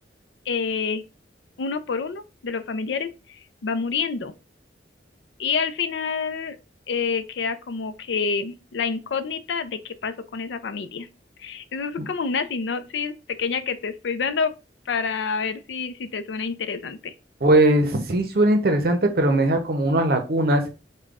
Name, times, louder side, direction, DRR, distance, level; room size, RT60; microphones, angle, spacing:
voice 1, 0.5-1.0 1.6-4.3 5.4-6.6 6.9-11.1 11.4-14.5 14.9-17.1, left 5 dB, 85° left, 0.4 m, -28 dB
voice 2, 17.4-20.6, right 1 dB, 55° right, 0.7 m, -20 dB
5.1 x 2.2 x 2.3 m
head